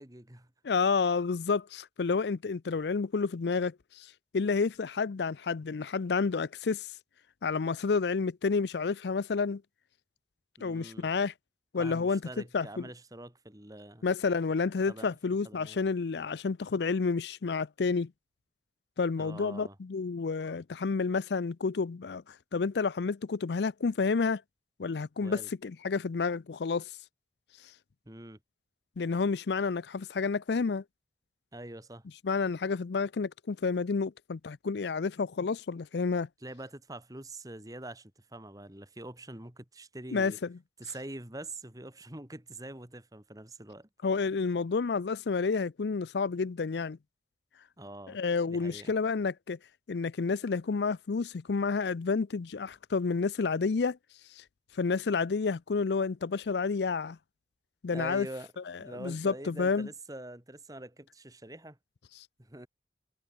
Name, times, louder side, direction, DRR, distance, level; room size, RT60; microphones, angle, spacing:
voice 1, 0.0-0.5 10.6-11.1 11.8-14.0 14.9-15.1 15.4-15.8 19.2-19.8 25.2-25.5 28.1-28.4 31.5-32.0 36.4-40.4 40.8-43.9 47.8-48.2 48.5-48.9 57.9-58.5 58.8-61.8 62.4-62.7, right 1 dB, 20° right, 2.4 m, -44 dB
voice 2, 0.6-6.9 7.4-9.6 10.6-11.3 11.7-12.2 12.5-12.9 14.0-18.1 19.0-24.4 24.8-26.9 29.0-30.8 32.2-36.3 40.1-40.5 44.0-47.0 48.1-49.6 49.9-54.0 54.4-54.5 54.7-57.2 57.8-58.3 58.7-59.9, left 4 dB, 70° left, 0.5 m, -30 dB
head